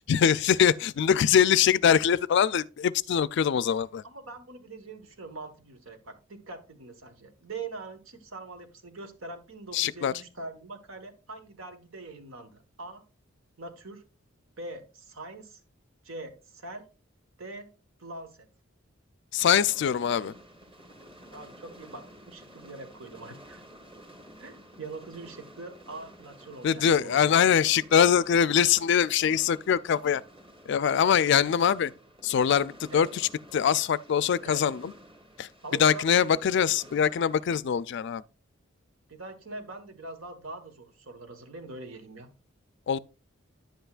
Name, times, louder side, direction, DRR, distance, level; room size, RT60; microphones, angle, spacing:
voice 1, 0.1-4.0 9.7-10.1 19.3-20.3 26.6-30.2 30.7-31.9 32.2-34.9 35.4-38.2 42.9-43.0, left 8 dB, 60° left, 0.3 m, -23 dB
voice 2, 4.0-13.0 13.6-14.0 14.6-15.6 16.0-16.8 17.4-17.7 18.0-18.5 21.3-23.6 24.4-27.5 32.9-33.1 34.4-34.6 35.6-36.7 39.1-42.3, right 2 dB, 90° right, 1.4 m, -43 dB
sound 1, 19.4-37.5, equal, 25° right, 1.5 m, -52 dB
10.0 x 7.9 x 2.4 m
head